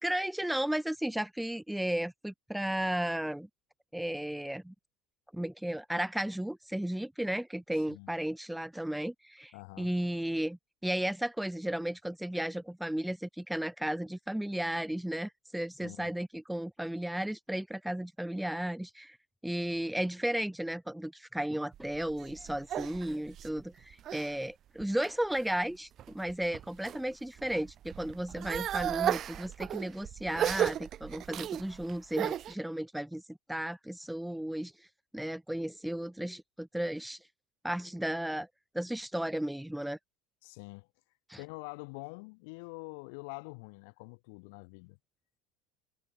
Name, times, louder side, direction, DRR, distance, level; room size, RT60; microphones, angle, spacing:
voice 1, 0.0-3.5 3.9-4.7 5.3-19.2 19.4-34.7 35.1-37.2 37.6-38.5 38.7-40.0 41.3-41.4, right 1 dB, ahead, 1.6 m, -34 dB
voice 2, 9.5-9.9 15.8-16.1 40.4-40.9 41.4-45.0, left 32 dB, 65° left, 4.7 m, -45 dB
sound 1, 21.7-24.3 24.8-25.4 26.0-27.0 27.4-32.5, right 11 dB, 30° right, 1.7 m, -35 dB
cardioid pair, 175°, 0 cm